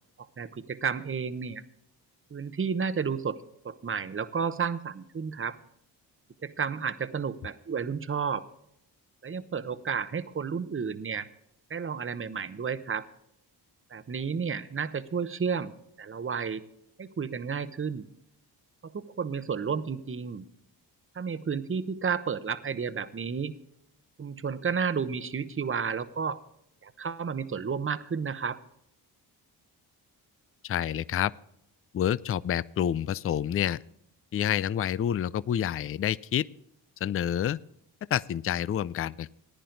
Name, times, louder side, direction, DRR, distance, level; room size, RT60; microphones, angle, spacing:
voice 1, 0.2-1.6 2.3-3.4 3.6-5.6 6.4-8.4 9.2-11.3 11.7-13.1 13.9-15.7 16.0-16.6 17.0-18.1 18.9-20.4 21.1-23.5 24.2-26.4 26.8-28.6, right 6 dB, 30° right, 14 dB, 0.9 m, -31 dB
voice 2, 30.6-31.3 31.9-33.8 34.3-36.5 37.0-37.6 38.1-39.3, left 10 dB, 35° left, 19 dB, 0.4 m, -28 dB
15.0 x 10.0 x 3.9 m, 0.76 s
supercardioid pair, 60°, 44 cm